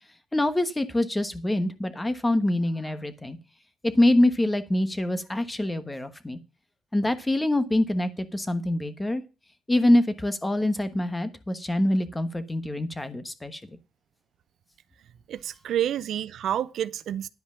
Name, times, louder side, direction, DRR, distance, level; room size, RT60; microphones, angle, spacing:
voice 1, 0.3-3.4 3.9-6.4 6.9-9.2 9.7-13.6, left 1 dB, 15° left, 1.2 m, -25 dB
voice 2, 15.3-17.3, right 11 dB, 70° right, 0.5 m, -29 dB
10.5 x 5.0 x 7.3 m
cardioid pair, 90°, 0 cm